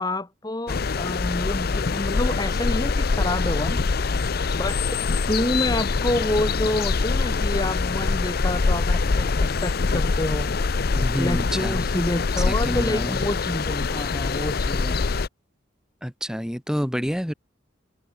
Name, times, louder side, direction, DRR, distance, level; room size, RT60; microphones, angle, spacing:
voice 1, 0.0-3.8 4.5-4.8 5.3-10.5 11.2-15.0, left 1 dB, 20° left, 1.3 m, -28 dB
sound 1, 0.7-15.3, left 4 dB, 50° left, 0.6 m, -24 dB
voice 2, 11.0-11.9 12.5-13.3 16.0-17.3, equal, 5° right, 4.4 m, -28 dB
head